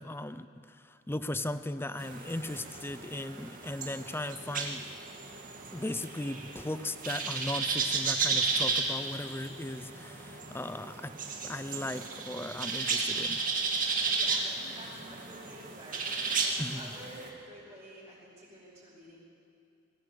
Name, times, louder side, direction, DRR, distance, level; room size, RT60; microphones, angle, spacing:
voice 1, 0.0-4.8 5.7-11.2 11.4-13.4 16.6-16.9, left 1 dB, 10° left, 13 dB, 0.6 m, -37 dB
sound 1, 2.0-17.3, right 4 dB, 45° right, 2.1 m, -34 dB
voice 2, 14.1-19.2, right 1 dB, 20° right, -11 dB, 5.9 m, -50 dB
20.5 x 16.5 x 8.4 m, 2.4 s
head